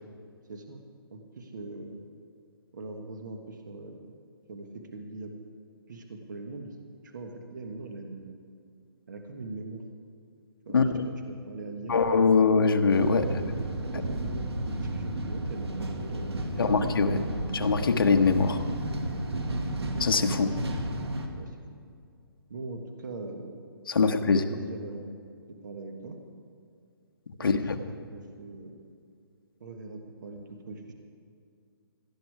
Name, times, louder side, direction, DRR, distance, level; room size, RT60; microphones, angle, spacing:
voice 1, 0.5-0.8 1.1-2.0 2.7-4.1 4.5-5.3 5.9-6.8 7.0-8.4 9.1-9.8 10.6-10.9 11.2-12.0 13.1-16.8 19.5-19.6 21.4-21.6 22.5-23.6 24.2-25.1 25.5-26.2 27.4-27.7 28.1-28.8 29.6-30.9, right 3 dB, 50° right, 4 dB, 1.4 m, -41 dB
voice 2, 10.7-11.1 11.9-13.2 16.6-17.2 17.5-18.6 20.0-20.6 23.9-24.4 27.4-27.8, left 4 dB, 65° left, 5 dB, 1.2 m, -23 dB
sound 1, 12.9-21.3, right 1 dB, 85° right, 1.8 m, -32 dB
17.5 x 12.5 x 4.8 m, 2.3 s
hypercardioid pair, 170°, 13 cm